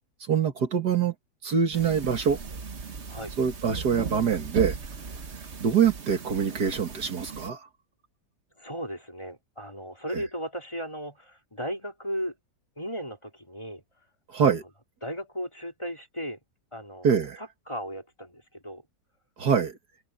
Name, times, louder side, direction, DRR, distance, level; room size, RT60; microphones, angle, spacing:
voice 1, 0.3-1.1 1.4-2.4 3.4-4.8 5.6-7.6 10.1-10.2 14.3-14.6 17.0-17.4 19.4-19.8, right 7 dB, 65° right, 2.3 m, -24 dB
sound 1, 1.7-7.5, right 5 dB, 40° right, 1.5 m, -37 dB
voice 2, 8.6-12.3 12.8-13.8 14.4-14.5 15.0-16.4 16.7-17.1 17.4-18.8, equal, 15° left, 3.6 m, -36 dB
open air
omnidirectional pair, 1.9 m